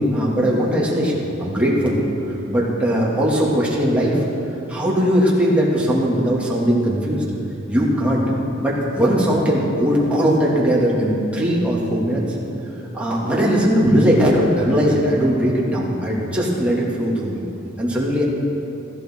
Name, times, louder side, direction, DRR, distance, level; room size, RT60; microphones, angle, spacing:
voice 1, 0.0-2.0 2.5-4.2 4.7-7.2 7.7-8.3 8.6-12.4 12.9-17.5 17.8-18.2, equal, 5° right, -6 dB, 2.6 m, -19 dB
17.0 x 14.0 x 3.9 m, 2.8 s
head